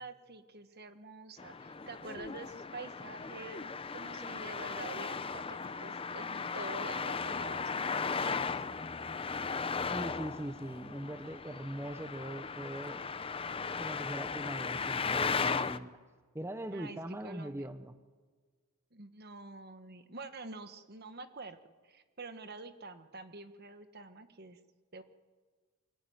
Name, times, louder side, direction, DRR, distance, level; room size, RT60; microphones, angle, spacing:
voice 1, 0.0-8.6 16.7-17.7 18.9-21.6 21.8-24.6 24.9-25.0, right 3 dB, 50° right, 10 dB, 1.5 m, -47 dB
Traffic noise roadway noise, 1.4-15.8, left 5 dB, 25° left, 0.7 m, -36 dB
voice 2, 9.9-13.0 13.8-16.0 16.3-17.9, right 1 dB, 10° right, 9 dB, 0.9 m, -41 dB
24.0 x 19.0 x 9.5 m, 1.5 s
head